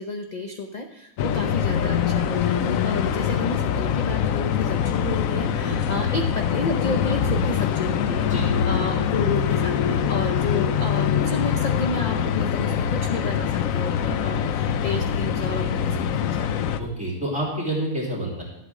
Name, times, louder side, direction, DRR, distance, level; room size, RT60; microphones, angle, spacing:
voice 1, 0.0-16.5, left 2 dB, 45° left, 4 dB, 0.6 m, -31 dB
sound 1, 1.2-16.8, left 8 dB, 75° left, 1.0 m, -24 dB
voice 2, 5.6-6.0 8.2-8.5 16.8-18.4, right 1 dB, 5° right, -5 dB, 2.7 m, -28 dB
12.0 x 8.2 x 3.7 m, 0.88 s
omnidirectional pair, 1.5 m